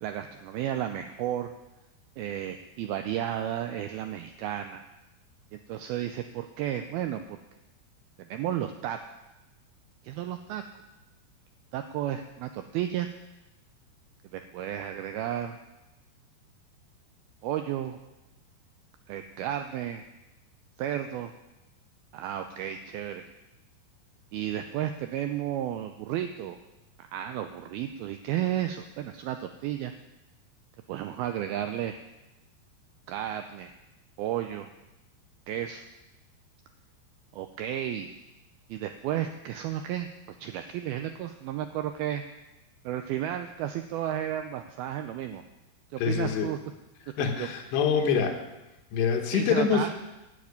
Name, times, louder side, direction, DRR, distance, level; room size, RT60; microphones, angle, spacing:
voice 1, 0.0-1.5 2.2-4.8 5.5-7.4 8.3-9.0 10.0-10.6 11.7-13.1 14.3-15.6 17.4-18.0 19.1-20.0 20.8-21.3 22.1-23.2 24.3-26.6 27.1-29.9 30.9-32.0 33.1-33.7 34.2-34.7 35.5-35.8 37.3-38.1 38.7-40.1 40.4-42.2 42.9-45.4 45.9-46.6 47.4-47.5 49.3-49.9, right 11 dB, 85° right, 7 dB, 2.2 m, -33 dB
voice 2, 46.0-46.5 47.2-48.4 48.9-49.9, left 6 dB, 75° left, 4 dB, 3.3 m, -25 dB
11.5 x 7.5 x 9.6 m, 1.0 s
omnidirectional pair, 5.0 m